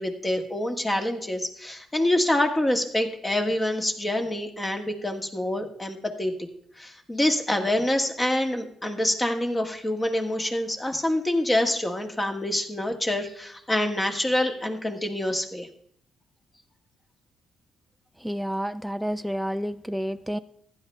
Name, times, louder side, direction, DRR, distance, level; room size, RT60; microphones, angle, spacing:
voice 1, 0.0-6.5 6.8-15.7, left 1 dB, 20° left, 4 dB, 1.6 m, -26 dB
voice 2, 18.2-20.4, equal, 5° right, 10 dB, 0.4 m, -30 dB
15.5 x 10.5 x 3.3 m, 0.65 s
cardioid pair, 90°, 0 cm